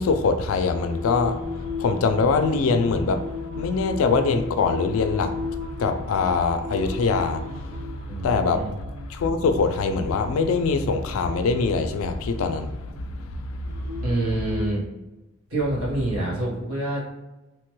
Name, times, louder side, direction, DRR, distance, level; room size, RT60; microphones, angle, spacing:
voice 1, 0.0-8.7 9.1-14.0, left 4 dB, 75° left, 0.3 m, -24 dB
Singing, 0.7-14.7, left 4 dB, 10° right, 1.0 m, -37 dB
voice 2, 8.1-8.7 14.0-14.8 15.5-17.2, right 2 dB, 85° right, 1.3 m, -27 dB
3.1 x 2.2 x 3.0 m
head